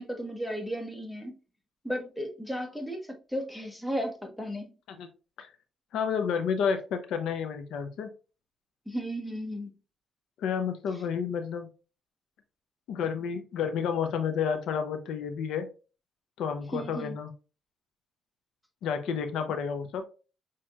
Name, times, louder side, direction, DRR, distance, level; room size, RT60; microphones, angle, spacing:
voice 1, 0.0-1.3 1.8-4.7 8.9-9.7 16.7-17.2, equal, 5° left, 1.1 m, -34 dB
voice 2, 5.9-8.1 10.4-11.7 12.9-15.7 16.4-17.3 18.8-20.0, left 7 dB, 80° left, 0.6 m, -30 dB
6.1 x 2.9 x 2.3 m
cardioid pair, 90°, 0 cm